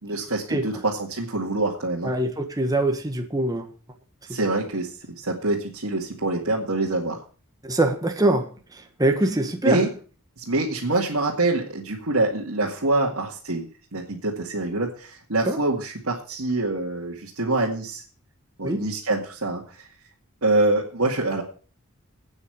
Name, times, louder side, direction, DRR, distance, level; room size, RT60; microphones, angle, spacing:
voice 1, 0.0-2.1 4.3-7.2 9.6-9.9 10.4-13.7 13.9-18.0 18.6-19.9 20.4-21.4, right 2 dB, 80° right, 2.1 m, -25 dB
voice 2, 2.0-3.7 4.3-4.4 7.6-9.8 15.5-15.6 18.6-18.8, right 2 dB, 20° right, 1.4 m, -23 dB
8.9 x 8.3 x 8.0 m
head